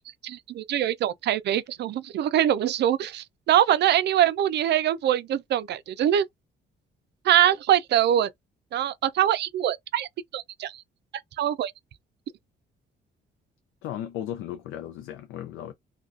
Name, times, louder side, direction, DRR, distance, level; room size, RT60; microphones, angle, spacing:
voice 1, 0.0-6.3 7.2-8.3 8.7-10.8 11.4-11.7, right 11 dB, 60° right, 0.4 m, -23 dB
voice 2, 13.8-15.7, left 11 dB, 90° left, 0.4 m, -35 dB
2.4 x 2.2 x 2.4 m
cardioid pair, 90°, 20 cm